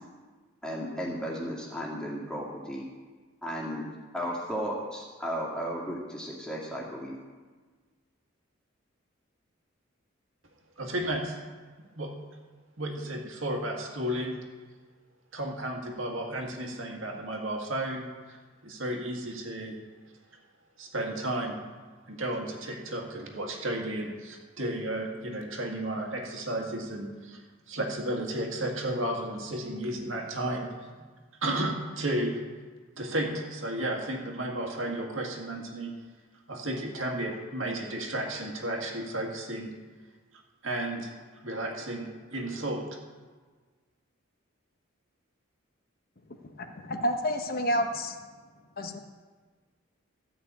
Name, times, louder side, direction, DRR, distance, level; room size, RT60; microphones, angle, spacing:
voice 1, 0.6-2.9 3.4-3.9 4.1-7.1, equal, 5° left, -4 dB, 2.2 m, -34 dB
voice 2, 10.8-11.4 11.9-12.1 12.8-14.4 15.3-18.4 18.6-19.8 20.8-21.6 22.1-27.4 27.7-30.7 31.4-32.4 33.0-35.9 36.5-39.7 40.6-41.1 41.4-42.8, right 1 dB, 70° right, 2 dB, 2.0 m, -33 dB
voice 3, 46.3-48.2 48.8-49.0, equal, 45° left, 5 dB, 0.9 m, -30 dB
14.0 x 5.9 x 8.3 m, 1.4 s
head